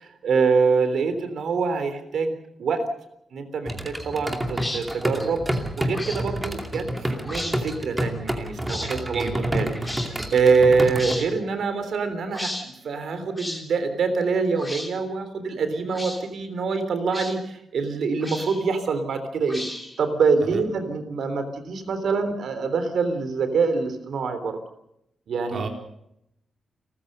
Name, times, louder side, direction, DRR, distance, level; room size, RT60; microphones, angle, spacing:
voice 1, 0.0-2.9 3.3-5.4 5.8-19.6 20.0-24.6 25.3-25.7, right 4 dB, 75° right, 9 dB, 3.5 m, -25 dB
sound 1, 3.7-11.2, right 1 dB, 10° right, 2.6 m, -29 dB
sound 2, 4.5-4.8 5.9-6.2 7.2-7.6 8.7-8.9 9.8-10.1 10.9-11.3 12.3-12.6 13.4-13.6 14.6-14.9 15.9-16.2 17.1-17.3 18.2-18.6 19.5-20.0, left 1 dB, 10° left, 3.1 m, -33 dB
voice 2, 9.1-9.5 20.5-20.6 25.5-25.7, right 4 dB, 55° right, 3 dB, 4.0 m, -31 dB
29.5 x 14.5 x 6.7 m, 0.79 s
wide cardioid pair, 150°, 0 cm